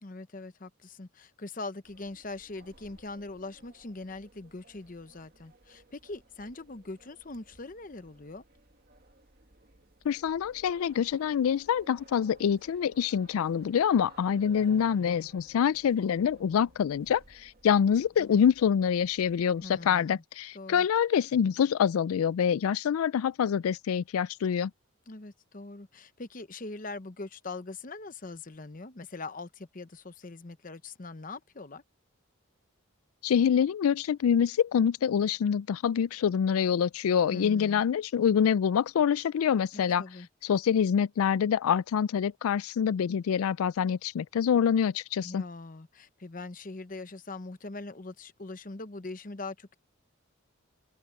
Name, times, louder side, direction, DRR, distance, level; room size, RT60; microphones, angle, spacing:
voice 1, 0.0-8.4 19.6-20.2 20.5-20.9 25.1-31.8 37.3-37.8 39.7-40.3 45.2-49.7, left 3 dB, 40° left, 0.9 m, -42 dB
sound 1, 1.8-19.9, right 2 dB, 45° right, 1.9 m, -58 dB
voice 2, 10.1-24.7 33.2-40.0 40.4-45.4, left 8 dB, 85° left, 0.3 m, -26 dB
head